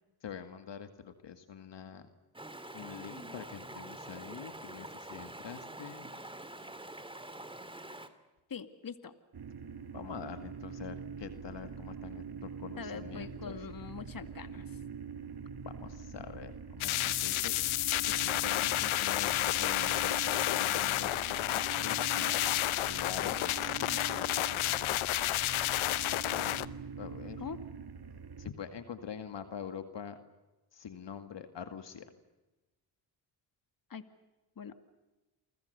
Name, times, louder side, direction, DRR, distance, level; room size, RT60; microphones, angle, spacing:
voice 1, 0.2-2.1 2.7-6.1 9.9-13.6 15.7-17.5 18.0-20.2 20.5-21.1 21.5-24.1 26.4-27.4 28.4-30.2 30.7-32.1, left 7 dB, 60° left, 9 dB, 2.2 m, -45 dB
Stream, 2.3-8.1, right 1 dB, 10° right, 2.9 m, -46 dB
voice 2, 8.5-9.1 12.8-14.6 27.4-27.6 33.9-34.0 34.6-34.7, left 6 dB, 45° left, 10 dB, 2.3 m, -43 dB
sound 1, 9.3-28.5, right 6 dB, 50° right, 2.8 m, -44 dB
sound 2, 16.8-26.7, left 15 dB, 85° left, 0.9 m, -31 dB
29.5 x 23.5 x 6.8 m, 1.1 s
supercardioid pair, 60°, 48 cm